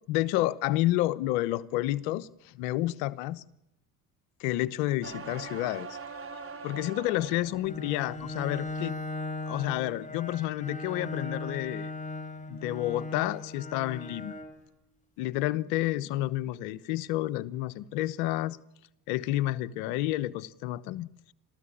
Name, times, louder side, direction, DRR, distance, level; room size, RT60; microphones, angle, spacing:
voice 1, 0.1-3.4 4.4-5.9 6.6-9.0 9.5-11.9 12.5-14.3 15.2-18.6 19.1-21.1, left 15 dB, 85° left, 1.1 m, -30 dB
sound 1, 5.0-7.7 8.2-8.7, right 4 dB, 35° right, 3.6 m, -42 dB
Bowed string instrument, 7.5-14.6, left 2 dB, 20° left, 4.2 m, -38 dB
30.0 x 13.5 x 10.0 m
supercardioid pair, 85°, 38 cm